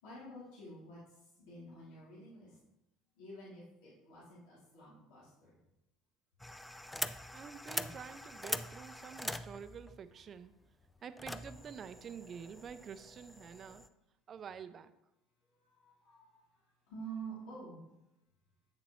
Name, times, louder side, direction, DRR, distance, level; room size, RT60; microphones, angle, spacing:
voice 1, 0.0-2.6 3.2-5.5 7.7-7.9 15.5-16.3 16.9-17.8, right 3 dB, 75° left, -8 dB, 2.9 m, -49 dB
sound 1, 6.4-13.9, left 1 dB, 5° left, 0.4 m, -43 dB
voice 2, 7.3-10.5 11.0-13.8 14.3-14.9, right 7 dB, 40° right, 12 dB, 0.5 m, -48 dB
7.6 x 7.0 x 3.1 m, 0.89 s
hypercardioid pair, 80°, 0 cm